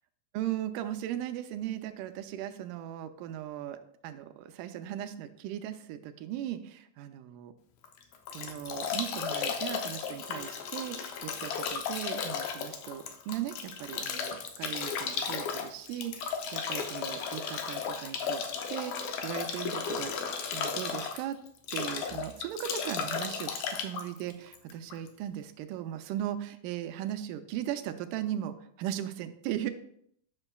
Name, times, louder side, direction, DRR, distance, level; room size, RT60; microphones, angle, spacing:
voice 1, 0.3-7.5 8.3-20.1 20.5-21.4 21.7-29.7, right 11 dB, 85° right, 9 dB, 2.1 m, -38 dB
Bathtub (filling or washing) / Drip / Trickle dribble, 7.8-25.1, left 6 dB, 75° left, 1.8 m, -35 dB
9.8 x 6.3 x 2.2 m, 0.69 s
omnidirectional pair, 3.8 m